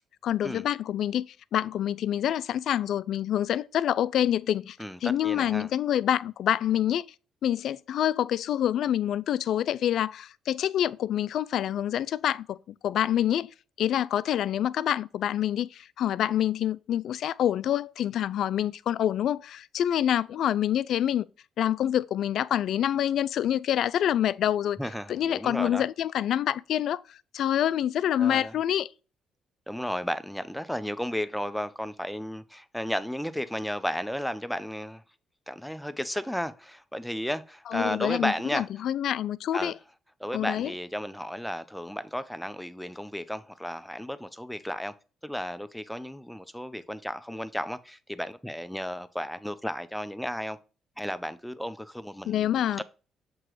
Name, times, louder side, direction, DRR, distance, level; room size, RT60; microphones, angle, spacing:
voice 1, 0.2-4.8 5.0-7.0 7.4-12.6 12.8-13.5 13.8-21.3 21.6-24.8 25.1-27.0 27.3-28.9 37.7-39.7 40.3-40.7 52.3-52.8, left 11 dB, 70° left, 0.3 m, -26 dB
voice 2, 4.8-5.7 24.8-25.9 28.2-28.5 29.7-35.0 35.5-38.7 39.5-39.7 40.2-44.9 45.2-50.6 51.0-52.8, equal, ahead, 0.6 m, -33 dB
7.5 x 3.0 x 4.7 m
cardioid pair, 80°, 0 cm